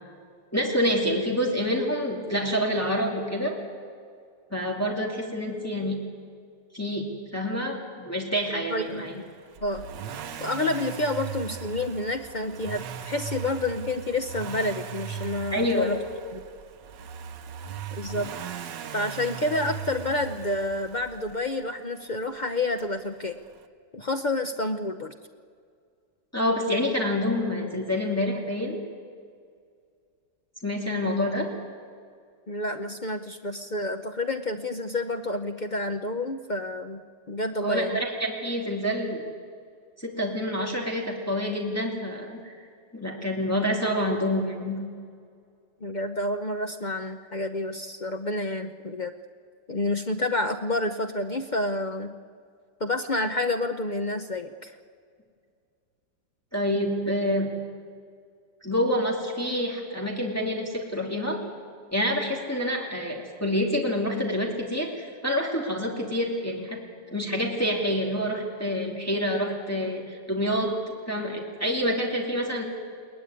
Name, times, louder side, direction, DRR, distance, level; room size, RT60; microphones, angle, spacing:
voice 1, 0.5-3.5 4.5-6.0 6.7-7.0 7.3-9.1 15.5-15.9 26.3-28.8 30.6-31.5 37.6-39.3 40.0-42.5 42.9-44.8 56.5-57.5 58.6-61.4 61.9-66.8 67.1-72.7, equal, 10° left, -1 dB, 2.6 m, -27 dB
voice 2, 8.7-9.3 9.6-9.8 10.4-16.0 16.3-16.4 17.9-18.3 18.9-23.4 23.9-25.1 32.5-38.0 45.8-49.1 49.7-52.1 52.8-54.7, left 2 dB, 50° left, 6 dB, 0.5 m, -29 dB
Accelerating revving vroom, 9.6-21.5 22.8-22.9, right 7 dB, 85° right, 1.6 m, -38 dB
21.5 x 19.0 x 9.6 m, 2.2 s
omnidirectional pair, 1.9 m